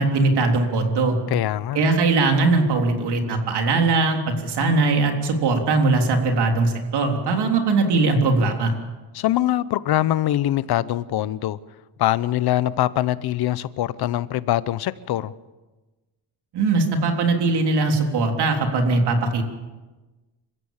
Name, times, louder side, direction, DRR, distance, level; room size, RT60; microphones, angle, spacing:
voice 1, 0.0-1.2 1.7-8.7 16.5-19.4, right 3 dB, 60° right, 3.7 m, -20 dB
voice 2, 1.3-1.8 9.1-11.6 12.0-15.3, left 13 dB, 55° left, 0.8 m, -23 dB
27.5 x 15.5 x 7.4 m
cardioid pair, 155°, 45 cm